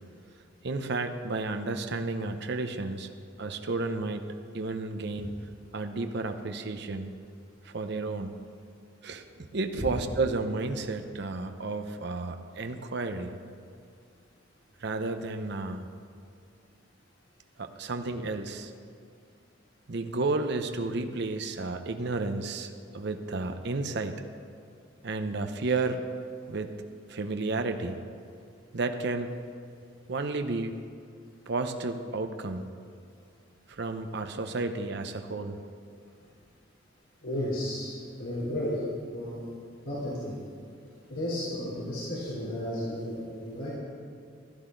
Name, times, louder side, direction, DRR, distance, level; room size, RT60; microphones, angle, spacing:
voice 1, 0.6-3.1 3.4-5.3 5.7-7.1 7.6-8.3 9.0-9.2 9.5-13.4 14.8-15.8 17.6-18.7 19.9-24.2 25.0-26.0 26.5-26.8 27.1-28.0 28.7-29.3 30.1-30.7 31.5-32.7 33.7-35.6, right 3 dB, 60° right, 7 dB, 0.7 m, -32 dB
voice 2, 37.2-37.9 38.2-38.8 39.1-39.4 39.8-40.3 41.1-43.7, left 1 dB, 85° left, -8 dB, 3.5 m, -33 dB
15.5 x 12.0 x 3.9 m, 2.3 s
head